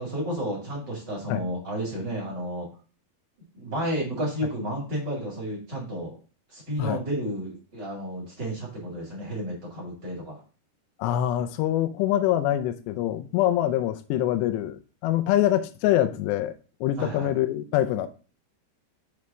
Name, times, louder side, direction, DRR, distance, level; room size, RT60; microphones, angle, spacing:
voice 1, 0.0-2.7 3.5-6.2 6.5-10.4 16.9-17.3, right 1 dB, 45° right, 1.4 m, -32 dB
voice 2, 11.0-16.5 16.8-18.1, left 12 dB, 80° left, 2.6 m, -24 dB
6.9 x 3.2 x 6.0 m
omnidirectional pair, 5.2 m